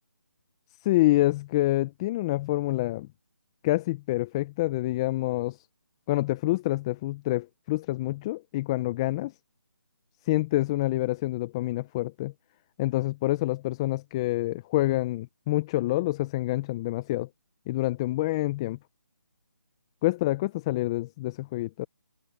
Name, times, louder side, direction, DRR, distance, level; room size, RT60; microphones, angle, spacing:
voice 1, 0.8-3.1 3.6-5.6 6.1-9.3 10.3-12.3 12.8-17.3 17.7-18.8 20.0-21.9, left 17 dB, 15° left, 0.5 m, -27 dB
figure-of-eight pair, 160°, 11 cm